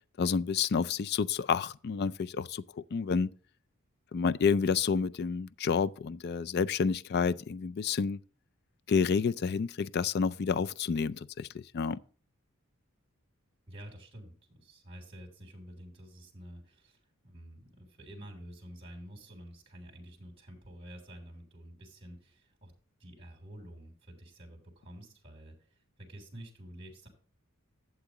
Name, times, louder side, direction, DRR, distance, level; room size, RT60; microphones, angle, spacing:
voice 1, 0.2-3.3 4.1-8.2 8.9-12.0, left 5 dB, 50° left, 0.4 m, -29 dB
voice 2, 13.7-22.7 23.0-27.1, right 1 dB, 25° right, 3.2 m, -49 dB
12.0 x 8.0 x 3.0 m
head